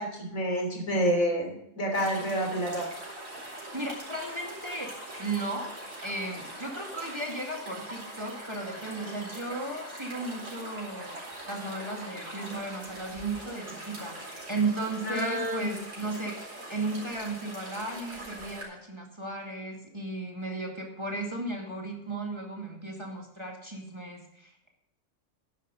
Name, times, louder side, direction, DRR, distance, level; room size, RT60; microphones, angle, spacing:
voice 1, 0.0-2.9 15.1-15.7, equal, 75° left, 2 dB, 3.7 m, -28 dB
sound 1, 1.9-18.6, right 1 dB, 75° right, 4.7 m, -42 dB
voice 2, 3.7-4.9 5.2-5.7 6.0-11.1 11.5-24.7, right 2 dB, 20° right, 0 dB, 2.2 m, -35 dB
11.5 x 11.0 x 3.9 m, 0.81 s
omnidirectional pair, 1.4 m